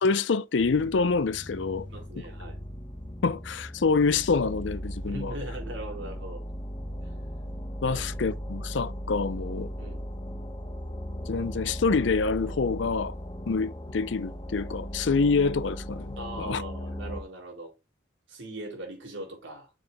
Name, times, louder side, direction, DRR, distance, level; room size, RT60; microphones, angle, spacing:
voice 1, 0.0-1.9 3.2-5.3 7.8-9.7 11.3-13.1 13.5-16.1 16.4-16.6, left 4 dB, 80° left, 0.5 m, -26 dB
sound 1, 0.6-17.2, equal, 25° left, 0.9 m, -37 dB
voice 2, 1.9-2.6 5.1-6.4 7.0-7.1 7.9-8.0 9.8-10.0 16.2-17.7 18.3-19.7, right 1 dB, 90° right, 4.3 m, -40 dB
7.8 x 7.5 x 2.2 m
head